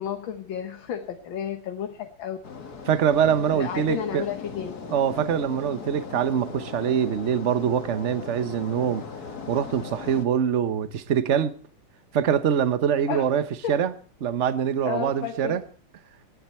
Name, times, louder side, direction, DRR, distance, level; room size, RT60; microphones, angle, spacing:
voice 1, 0.0-2.4 3.5-4.8 13.1-13.3 13.6-13.8 14.9-15.6, left 8 dB, 65° left, 1.9 m, -32 dB
sound 1, 2.4-10.3, left 5 dB, 45° left, 2.1 m, -39 dB
voice 2, 2.9-4.2 4.9-9.0 9.5-11.6 12.1-13.9 14.2-15.6, right 8 dB, 45° right, 1.0 m, -24 dB
26.5 x 11.0 x 4.4 m
omnidirectional pair, 2.4 m